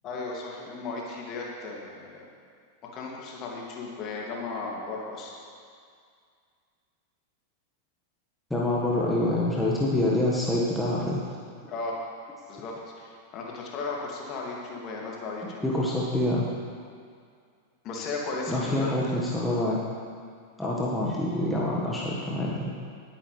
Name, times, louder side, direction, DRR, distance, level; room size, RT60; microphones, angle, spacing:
voice 1, 0.0-2.2 2.8-5.3 11.7-12.0 12.5-15.7 17.8-19.1, left 3 dB, 35° left, -2 dB, 2.5 m, -35 dB
voice 2, 8.5-11.2 15.6-16.5 18.4-19.8 20.6-22.8, left 1 dB, 5° left, -5 dB, 1.6 m, -26 dB
19.5 x 9.8 x 3.4 m, 2.2 s
figure-of-eight pair, 90°, 0 cm